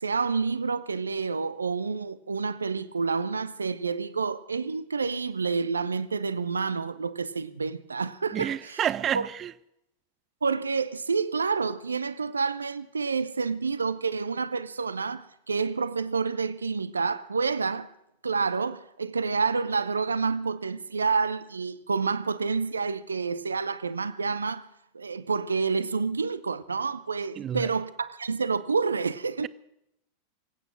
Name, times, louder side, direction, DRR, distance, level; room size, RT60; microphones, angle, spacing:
voice 1, 0.0-8.8 9.1-9.3 10.4-17.9 18.2-24.7 24.9-29.5, right 4 dB, 75° right, 0.6 m, -28 dB
voice 2, 8.3-9.5 27.4-27.7, right 10 dB, 30° right, 0.5 m, -29 dB
23.0 x 9.0 x 6.3 m
figure-of-eight pair, 90°, 0 cm